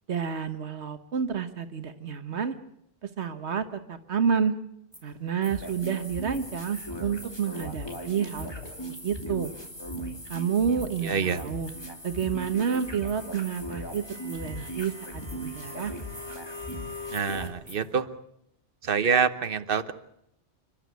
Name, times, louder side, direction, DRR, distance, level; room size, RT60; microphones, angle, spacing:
voice 1, 0.1-2.5 3.0-4.6 5.0-8.5 9.0-9.5 10.3-11.7 12.0-15.9, right 7 dB, 80° right, 9 dB, 1.5 m, -29 dB
sound 1, 4.9-8.5 8.8-10.4 10.8-18.0, equal, 15° right, 5.7 m, -50 dB
sound 2, 5.5-17.5, equal, 25° left, 2.7 m, -38 dB
sound 3, 5.9-11.1, left 1 dB, 75° left, 4.9 m, -54 dB
voice 2, 11.0-11.4 17.1-18.1 18.8-19.9, right 6 dB, 55° right, 11 dB, 1.2 m, -26 dB
28.5 x 12.0 x 9.3 m, 0.77 s
omnidirectional pair, 1.1 m